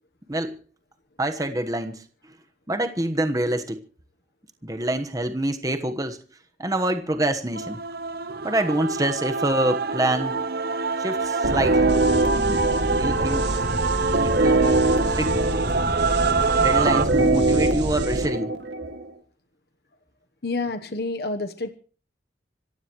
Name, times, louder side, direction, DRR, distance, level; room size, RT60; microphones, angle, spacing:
voice 1, 1.2-2.0 2.7-3.8 4.6-6.2 6.6-7.8 8.4-10.4 11.0-11.9 12.3-12.6 13.0-13.6 14.2-15.3 16.6-18.5, right 1 dB, 20° right, 1.3 m, -26 dB
Male singing / Female singing / Musical instrument, 7.5-17.0, right 4 dB, 55° right, 0.9 m, -25 dB
sound 1, 11.4-19.1, right 2 dB, 75° right, 2.4 m, -23 dB
voice 2, 20.4-21.7, left 3 dB, 60° left, 1.1 m, -29 dB
26.0 x 15.5 x 3.1 m
head